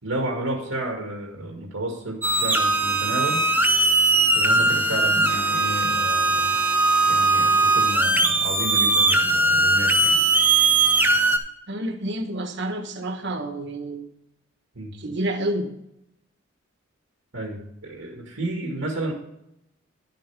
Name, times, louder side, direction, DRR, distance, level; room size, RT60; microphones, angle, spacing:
voice 1, 0.0-3.4 4.3-6.5 7.1-10.2 14.8-14.9 17.3-19.1, right 1 dB, 85° right, 0 dB, 2.0 m, -31 dB
sound 1, 2.2-11.4, right 2 dB, 10° right, 0.8 m, -20 dB
voice 2, 11.7-14.1 15.0-15.7, right 1 dB, 55° right, 5 dB, 1.2 m, -29 dB
11.0 x 7.8 x 3.5 m, 0.82 s
head